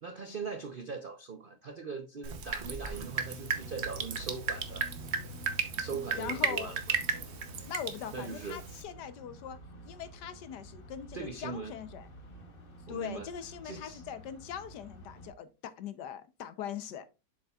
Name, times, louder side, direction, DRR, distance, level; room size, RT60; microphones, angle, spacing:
voice 1, 0.0-4.9 5.8-7.0 8.1-8.6 11.1-11.8 12.9-13.3 13.6-14.0, right 4 dB, 80° right, 0.4 m, -40 dB
Drip, 2.2-8.8, right 6 dB, 50° right, 0.9 m, -35 dB
sound 1, 3.0-15.3, right 1 dB, 35° left, 1.2 m, -49 dB
voice 2, 6.2-6.8 7.7-9.6 9.8-12.1 12.9-17.0, left 9 dB, 70° left, 1.3 m, -41 dB
7.5 x 6.9 x 2.3 m
omnidirectional pair, 1.9 m